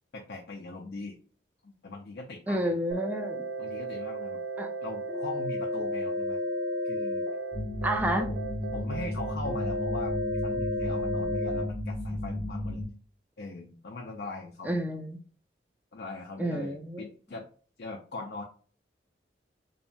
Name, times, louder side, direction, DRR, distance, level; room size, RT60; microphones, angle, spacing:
voice 1, 0.1-1.2 1.6-2.8 3.6-4.4 4.8-6.4 6.8-7.2 8.2-10.1 10.4-12.8 13.4-14.8 15.9-17.4 17.8-18.4, left 2 dB, 60° left, 1 dB, 0.4 m, -40 dB
voice 2, 2.5-3.4 4.6-4.7 7.8-8.3 14.6-15.2 16.4-17.0, right 1 dB, 10° right, 4 dB, 0.3 m, -30 dB
sound 1, 2.9-11.6, equal, 75° right, 0.5 m, -33 dB
sound 2, 7.5-12.9, left 1 dB, 20° left, 0.8 m, -34 dB
2.7 x 2.1 x 2.6 m, 0.43 s
head